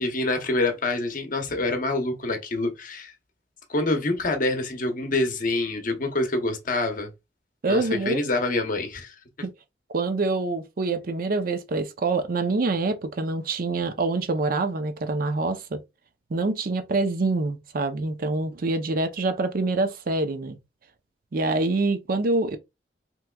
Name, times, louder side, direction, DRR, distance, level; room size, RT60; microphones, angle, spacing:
voice 1, 0.0-3.1 3.7-7.1 7.6-9.2, left 2 dB, 50° left, 0.8 m, -26 dB
voice 2, 7.6-8.2 9.9-15.8 16.3-20.6 21.3-22.6, right 3 dB, 55° right, 0.5 m, -25 dB
3.4 x 3.0 x 2.2 m
head